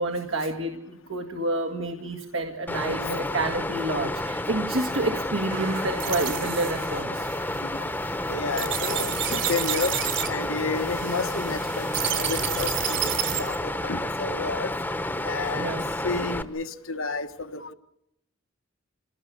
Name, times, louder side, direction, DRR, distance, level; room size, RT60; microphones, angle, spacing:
voice 1, 0.0-7.3 15.6-15.9, right 2 dB, 75° right, 4 dB, 2.0 m, -29 dB
voice 2, 2.7-3.2 7.6-7.9 8.3-13.1 13.4-14.7 15.2-17.7, left 4 dB, 75° left, 9 dB, 1.5 m, -31 dB
Water, 2.7-16.4, left 1 dB, 10° left, 1.0 m, -30 dB
sound 1, 5.5-13.6, right 9 dB, 60° right, 3.2 m, -31 dB
27.0 x 18.0 x 8.1 m, 0.78 s
head